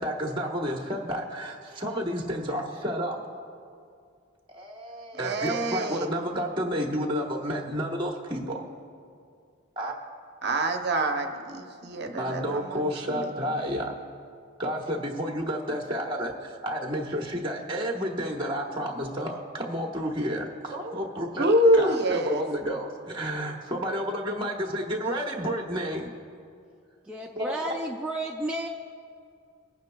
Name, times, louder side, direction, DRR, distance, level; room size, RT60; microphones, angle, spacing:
voice 1, 0.0-3.2 4.5-8.6 9.8-10.0 12.2-13.9 14.6-21.5 21.8-26.1 27.4-27.5 27.8-27.9 28.3-28.5, equal, 25° right, 1 dB, 1.1 m, -31 dB
voice 2, 5.1-6.1 10.4-12.9 13.4-13.6 21.4-22.4, right 1 dB, 50° right, 4 dB, 0.8 m, -25 dB
voice 3, 27.1-28.7, right 1 dB, 5° right, -2 dB, 0.3 m, -32 dB
21.0 x 9.3 x 2.3 m, 2.3 s
head